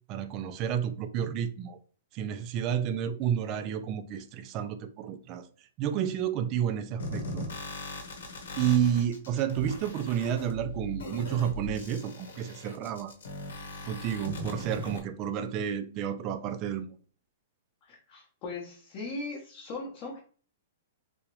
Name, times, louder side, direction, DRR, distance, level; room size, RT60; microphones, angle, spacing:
voice 1, 0.1-1.8 2.1-5.5 5.8-7.5 8.6-13.1 13.9-17.0, right 9 dB, 25° right, 0.3 m, -30 dB
sound 1, 7.0-15.0, left 1 dB, 80° left, 1.0 m, -39 dB
voice 2, 17.8-20.2, left 3 dB, 25° left, 0.7 m, -39 dB
3.4 x 2.9 x 3.0 m
hypercardioid pair, 175°, 0 cm